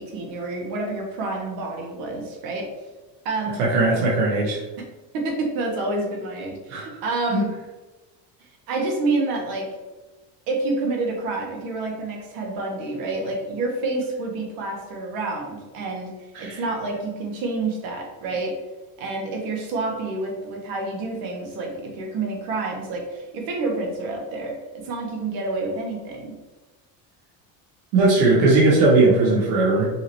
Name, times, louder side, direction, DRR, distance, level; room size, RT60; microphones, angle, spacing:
voice 1, 0.0-2.7 3.2-3.6 5.1-7.5 8.7-9.7 10.5-16.1 16.4-18.5 19.0-26.3, right 3 dB, 60° right, 0 dB, 1.3 m, -28 dB
voice 2, 3.6-4.6 6.7-6.8 7.3-7.4 16.3-16.6 27.9-29.9, right 2 dB, 85° right, -5 dB, 1.3 m, -18 dB
5.6 x 2.9 x 3.1 m, 1.2 s
cardioid pair, 165°, 39 cm